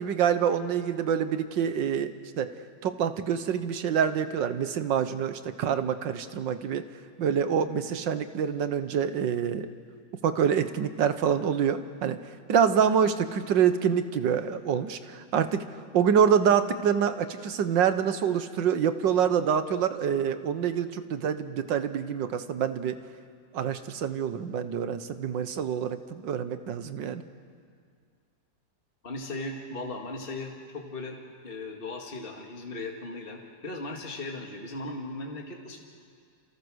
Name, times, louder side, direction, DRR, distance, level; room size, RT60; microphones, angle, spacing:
voice 1, 0.0-2.5 2.8-6.9 7.2-9.7 10.2-12.2 12.5-23.0 23.5-27.2, right 8 dB, 80° right, 10 dB, 1.8 m, -26 dB
voice 2, 29.0-31.2 31.4-35.8, left 2 dB, 30° left, 1 dB, 2.2 m, -37 dB
28.5 x 28.5 x 6.4 m, 2.1 s
omnidirectional pair, 2.0 m